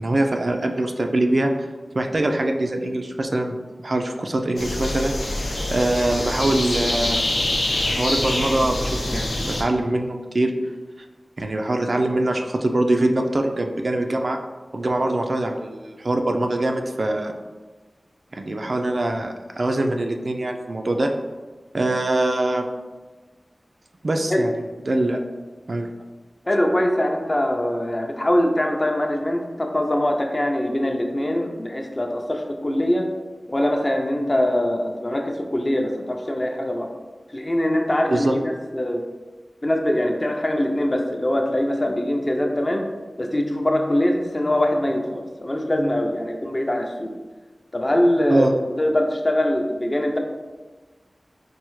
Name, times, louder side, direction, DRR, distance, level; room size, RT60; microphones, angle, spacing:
voice 1, 0.0-1.5 1.9-3.6 3.8-7.2 7.8-10.5 11.4-14.4 14.7-17.3 18.3-21.1 21.7-22.6 24.0-24.5 24.9-25.2 25.7-25.9 38.1-38.3 48.3-48.5, right 1 dB, 60° right, 4 dB, 0.3 m, -23 dB
sound 1, 4.6-9.6, left 1 dB, 85° left, 0.6 m, -25 dB
voice 2, 26.5-33.1 33.5-36.9 37.3-38.3 38.7-39.0 39.6-42.9 43.2-47.1 47.7-48.5 48.8-50.2, left 1 dB, 35° left, 2 dB, 0.4 m, -22 dB
4.4 x 2.0 x 3.0 m, 1.3 s
wide cardioid pair, 50°, 0 cm